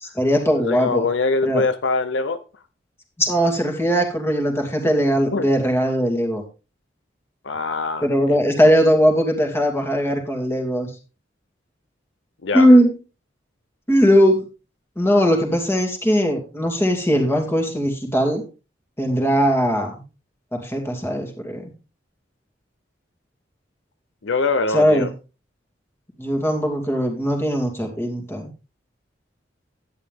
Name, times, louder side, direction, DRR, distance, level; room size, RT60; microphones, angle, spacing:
voice 1, 0.0-1.1 1.4-1.6 3.2-6.4 8.0-10.9 12.5-12.9 13.9-14.4 15.0-18.4 19.0-20.0 20.5-21.7 24.7-25.1 26.2-28.5, equal, 15° left, 2.4 m, -19 dB
voice 2, 0.6-2.4 5.3-5.5 7.4-8.7 12.4-12.7 24.2-25.1, left 3 dB, 80° left, 0.7 m, -23 dB
11.0 x 9.4 x 3.6 m
head